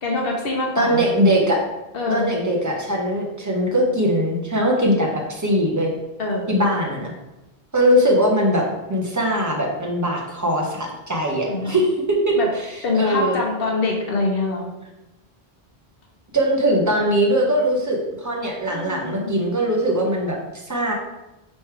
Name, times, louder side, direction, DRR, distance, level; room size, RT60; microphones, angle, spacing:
voice 1, 0.0-1.1 1.9-2.3 6.2-6.5 11.5-11.8 12.4-12.5 12.8-14.7 18.7-19.4, left 3 dB, 70° left, 0 dB, 0.9 m, -24 dB
voice 2, 0.8-1.6 2.1-5.9 6.5-7.1 7.7-12.4 12.9-13.4 16.3-20.4 20.7-20.9, equal, 20° right, -2 dB, 0.7 m, -21 dB
3.2 x 3.1 x 4.6 m, 0.98 s
omnidirectional pair, 1.0 m